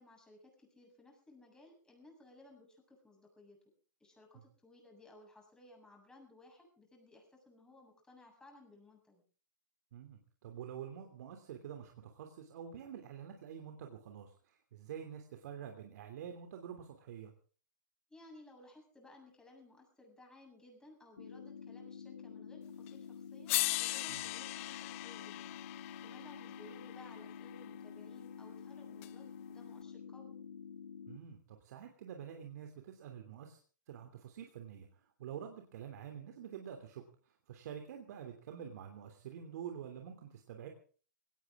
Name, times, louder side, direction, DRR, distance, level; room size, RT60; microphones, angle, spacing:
voice 1, 0.0-3.6 4.0-9.2 18.1-25.6 26.0-30.4, left 2 dB, 5° left, 2 dB, 7.5 m, -59 dB
voice 2, 9.9-17.3 24.1-24.2 31.1-33.6 33.9-37.0 37.5-40.7, right 8 dB, 60° right, 5 dB, 3.1 m, -47 dB
sound 1, 21.2-31.2, left 7 dB, 80° left, 1.3 m, -49 dB
sound 2, 22.9-23.0 23.5-27.7 29.0-29.1, left 20 dB, 45° left, 0.7 m, -39 dB
19.5 x 18.0 x 3.8 m, 0.41 s
hypercardioid pair, 130°, 10 cm